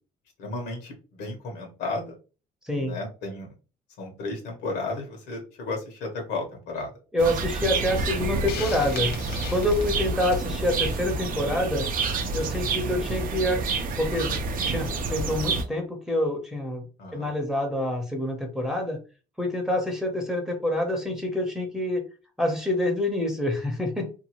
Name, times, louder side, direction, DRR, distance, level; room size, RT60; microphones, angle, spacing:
voice 1, 0.4-2.2 2.8-3.5 4.0-6.9 17.0-17.3, left 3 dB, 85° left, 2 dB, 1.1 m, -33 dB
voice 2, 2.6-3.0 7.1-9.1 9.5-11.9 12.3-13.6 14.0-14.4 14.6-16.9 17.1-19.0 19.4-22.0 22.4-24.1, left 1 dB, 5° right, 2 dB, 0.8 m, -27 dB
sound 1, 7.2-15.6, right 3 dB, 55° right, 0.6 m, -28 dB
Hiss, 8.5-10.5, left 7 dB, 70° left, 0.5 m, -38 dB
2.7 x 2.4 x 2.9 m, 0.34 s
cardioid pair, 110°, 17 cm